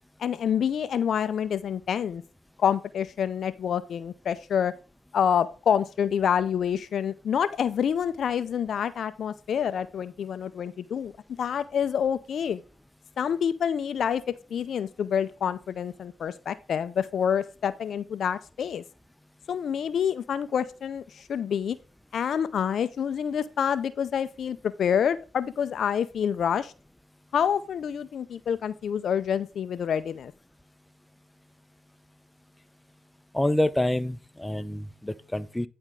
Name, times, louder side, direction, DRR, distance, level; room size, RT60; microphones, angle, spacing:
voice 1, 0.2-2.2 2.6-4.7 5.1-11.1 11.4-12.6 13.2-18.8 19.5-21.8 22.1-26.7 27.3-30.3, left 8 dB, 60° left, 0.5 m, -27 dB
voice 2, 33.3-35.7, left 1 dB, 10° left, 0.6 m, -27 dB
9.9 x 4.3 x 3.7 m
supercardioid pair, 55°, 0 cm